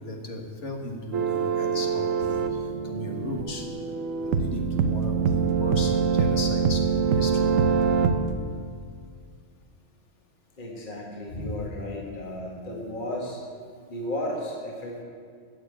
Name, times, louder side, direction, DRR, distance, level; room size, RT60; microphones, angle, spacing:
voice 1, 0.0-3.6 4.2-7.5 11.3-11.6, left 2 dB, 65° left, 2 dB, 2.0 m, -36 dB
sound 1, 1.1-8.4, right 6 dB, 85° right, 1.2 m, -24 dB
voice 2, 10.6-13.4 13.9-15.0, left 1 dB, 40° left, -1 dB, 2.0 m, -34 dB
15.0 x 7.2 x 8.3 m, 2.2 s
omnidirectional pair, 1.3 m